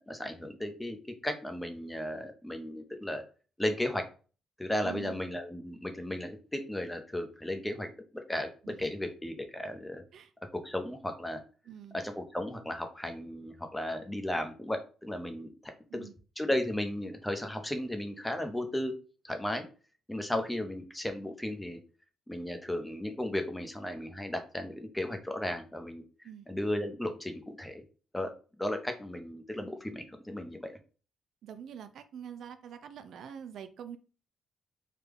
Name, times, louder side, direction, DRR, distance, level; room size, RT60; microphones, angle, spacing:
voice 1, 0.0-3.2 3.6-4.0 4.6-10.0 10.5-11.4 11.9-16.1 16.4-19.0 19.2-19.7 20.1-21.8 22.3-27.8 28.1-30.8, left 1 dB, 10° left, 6 dB, 0.7 m, -35 dB
voice 2, 4.8-5.2 8.6-8.8 10.1-10.3 11.7-12.0 15.9-16.1 26.2-26.5 31.4-34.0, right 9 dB, 70° right, 10 dB, 0.3 m, -45 dB
3.5 x 2.2 x 3.4 m, 0.36 s
cardioid pair, 90°, 0 cm